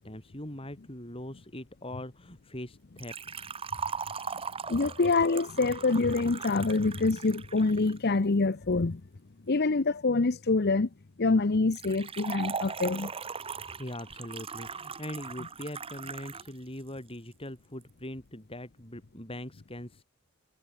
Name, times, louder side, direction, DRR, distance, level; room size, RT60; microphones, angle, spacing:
voice 1, 0.0-3.2 13.8-20.0, left 1 dB, 25° left, 7.0 m, -41 dB
Liquid, 3.0-8.0 11.7-16.5 16.8-16.9 17.8-17.9, right 5 dB, 25° right, 1.1 m, -39 dB
voice 2, 4.7-9.0 9.5-10.9 11.2-13.1, left 3 dB, 50° left, 0.7 m, -26 dB
head